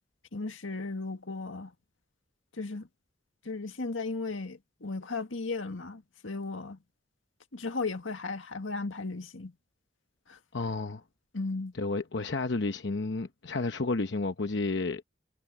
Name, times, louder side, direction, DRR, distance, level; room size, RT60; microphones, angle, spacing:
voice 1, 0.3-1.7 2.5-2.9 3.4-6.8 7.5-9.5 10.3-10.4 11.3-11.7, left 3 dB, 90° left, 1.8 m, -35 dB
voice 2, 10.5-11.0 11.8-15.0, left 3 dB, 65° left, 0.9 m, -31 dB
head